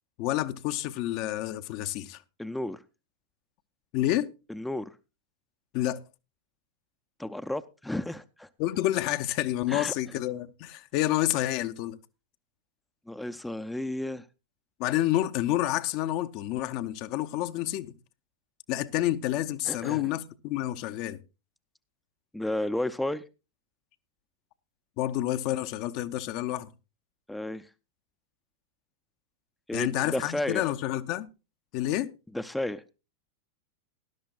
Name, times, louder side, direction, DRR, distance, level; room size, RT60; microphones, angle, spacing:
voice 1, 0.2-2.2 3.9-4.3 5.7-6.0 8.6-12.0 14.8-17.9 18.7-21.2 25.0-26.7 29.7-31.3 31.7-32.1, left 14 dB, 45° left, 0.7 m, -29 dB
voice 2, 2.4-2.8 4.5-4.9 7.2-8.5 9.7-9.9 13.1-14.2 19.7-20.1 22.3-23.2 27.3-27.7 29.7-30.6 32.3-32.8, left 1 dB, 5° left, 0.6 m, -32 dB
18.5 x 12.0 x 2.4 m
figure-of-eight pair, 90°, 0 cm